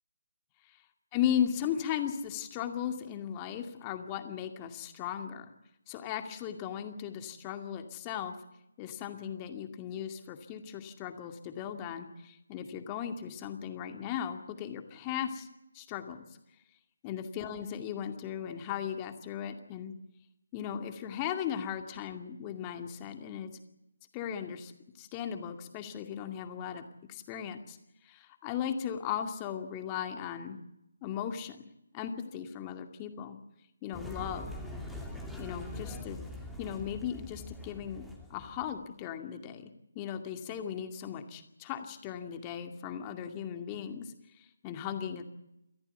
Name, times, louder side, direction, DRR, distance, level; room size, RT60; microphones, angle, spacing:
voice 1, 1.1-5.5 5.9-8.4 8.8-15.5 15.7-16.2 17.0-19.9 20.5-23.5 24.1-24.7 25.0-26.8 27.1-27.8 28.0-30.6 31.0-31.6 31.9-33.4 33.8-34.5 35.4-36.2 36.6-39.7 39.9-45.2, left 9 dB, 20° left, 6 dB, 2.3 m, -37 dB
sound 1, 33.9-38.8, left 1 dB, ahead, 2.7 m, -43 dB
29.0 x 14.0 x 8.3 m, 0.86 s
figure-of-eight pair, 150°, 0 cm